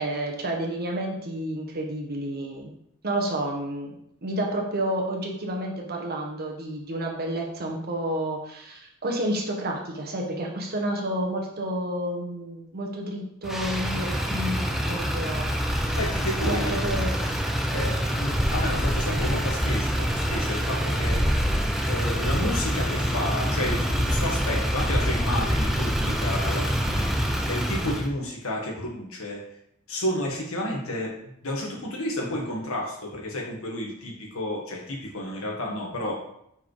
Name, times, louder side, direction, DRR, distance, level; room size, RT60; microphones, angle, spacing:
voice 1, 0.0-2.7 3.0-4.0 4.2-15.5 16.4-17.1, right 1 dB, 45° right, 0 dB, 1.3 m, -30 dB
Motor vehicle (road), 13.4-28.1, equal, ahead, 0.6 m, -26 dB
voice 2, 15.9-16.8 17.7-21.2 21.9-27.1 27.5-29.4 29.9-31.1 31.4-36.1, left 1 dB, 75° left, -1 dB, 1.8 m, -31 dB
5.7 x 4.8 x 4.8 m, 0.75 s
head